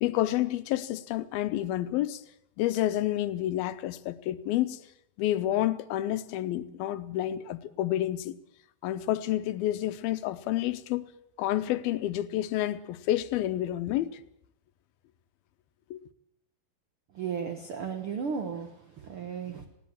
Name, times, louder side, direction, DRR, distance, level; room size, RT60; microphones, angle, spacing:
voice 1, 0.0-2.2 2.6-4.8 5.2-8.3 8.8-11.1 11.4-14.2 15.9-16.0, left 13 dB, 85° left, 2.8 m, -29 dB
voice 2, 17.1-19.7, right 6 dB, 55° right, 1.6 m, -35 dB
19.0 x 17.0 x 8.7 m
omnidirectional pair, 4.2 m